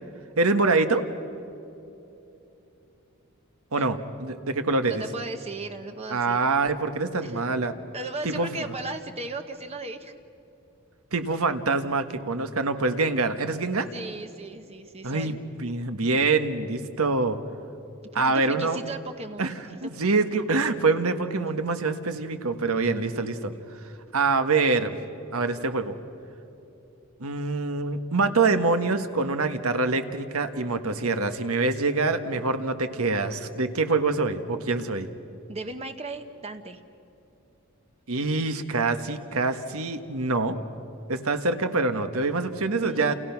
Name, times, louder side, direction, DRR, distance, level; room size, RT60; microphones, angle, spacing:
voice 1, 0.4-1.1 3.7-5.0 6.1-7.7 8.2-8.5 11.1-13.9 15.0-15.3 15.6-17.4 18.1-18.8 19.4-19.5 19.8-23.5 24.1-25.0 25.3-25.9 27.2-35.1 38.1-40.6 41.1-43.1, right 3 dB, 80° right, 8 dB, 1.5 m, -25 dB
voice 2, 4.9-6.4 7.2-7.4 7.9-10.2 13.9-15.4 18.1-19.8 35.5-36.8 42.8-43.1, right 2 dB, 30° right, 6 dB, 0.9 m, -36 dB
29.5 x 29.0 x 6.0 m, 2.9 s
head